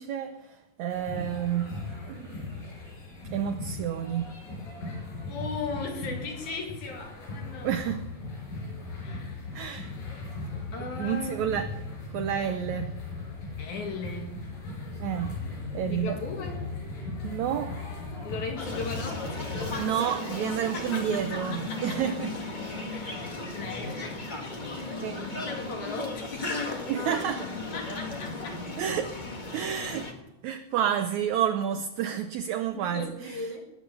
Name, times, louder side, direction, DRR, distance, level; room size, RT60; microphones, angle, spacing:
voice 1, 0.0-2.6 3.2-4.3 7.6-8.0 9.5-9.9 11.0-11.7 12.1-13.0 15.0-15.3 15.7-16.2 17.2-17.8 19.8-22.3 25.0-25.3 26.9-27.5 28.8-29.2 29.5-30.1 30.4-33.5, right 9 dB, 75° right, 1.8 m, -30 dB
sound 1, 0.9-19.9, left 3 dB, 85° left, 6.5 m, -38 dB
voice 2, 5.3-7.7 9.0-9.4 10.7-11.4 13.6-14.4 15.9-16.7 18.2-19.6 20.6-22.0 22.9-24.2 25.1-26.8 27.7-28.6 32.7-33.7, left 4 dB, 65° left, 3.2 m, -38 dB
sound 2, 18.6-30.1, left 2 dB, 45° left, 0.6 m, -35 dB
20.0 x 7.9 x 6.8 m
omnidirectional pair, 3.8 m